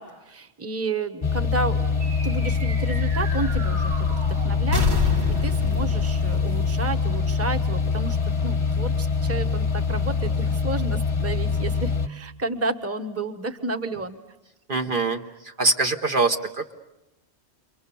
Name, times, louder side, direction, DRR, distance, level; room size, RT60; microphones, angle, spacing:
voice 1, 0.0-14.2, right 3 dB, 15° right, 6 dB, 1.1 m, -31 dB
sound 1, 1.2-12.1, left 5 dB, 30° left, 0.9 m, -24 dB
sound 2, 2.0-7.7, left 3 dB, 70° right, 2.3 m, -30 dB
voice 2, 14.7-16.7, right 3 dB, 50° right, 4 dB, 1.3 m, -24 dB
29.5 x 23.5 x 6.9 m, 1.0 s
omnidirectional pair, 1.2 m